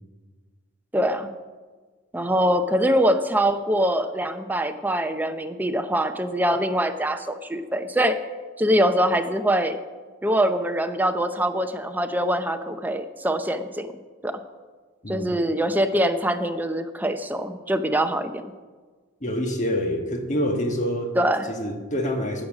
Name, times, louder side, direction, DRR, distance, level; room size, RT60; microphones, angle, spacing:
voice 1, 0.9-1.3 2.1-8.2 8.6-9.8 10.2-13.9 14.2-14.4 15.1-18.4 21.2-21.5, equal, 10° right, 8 dB, 0.6 m, -23 dB
voice 2, 15.0-15.4 19.2-21.1 21.6-22.5, equal, 35° left, 4 dB, 1.4 m, -26 dB
16.0 x 6.4 x 6.2 m, 1.4 s
head